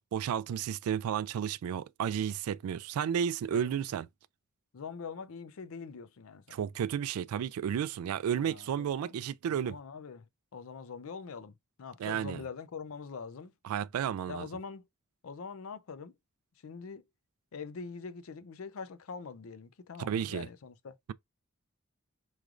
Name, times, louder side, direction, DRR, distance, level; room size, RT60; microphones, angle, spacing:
voice 1, 0.1-4.1 6.5-9.8 12.0-12.4 13.6-14.5 20.0-20.5, right 8 dB, 85° right, 0.3 m, -32 dB
voice 2, 3.5-3.9 4.7-6.6 8.3-9.2 9.4-13.5 14.3-14.9 15.2-16.1 16.6-17.0 17.5-21.0, left 5 dB, 70° left, 0.5 m, -44 dB
4.8 x 3.1 x 2.4 m
head